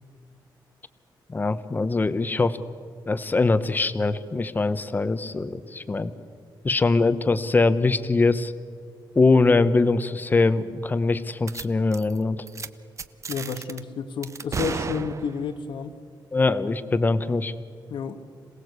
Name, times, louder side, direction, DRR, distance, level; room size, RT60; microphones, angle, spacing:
voice 1, 1.3-2.6 3.1-6.1 6.6-8.5 9.2-12.4 16.3-17.5, left 3 dB, 25° left, 13 dB, 1.0 m, -22 dB
sound 1, 11.5-11.6 11.9-12.2 12.5-12.7 13.0-13.8 14.2-15.6, right 5 dB, 40° right, 0.8 m, -33 dB
voice 2, 13.3-15.9 17.9-18.2, left 6 dB, 80° left, 9 dB, 1.6 m, -31 dB
27.0 x 18.0 x 8.2 m, 2.2 s
wide cardioid pair, 140°, 8 cm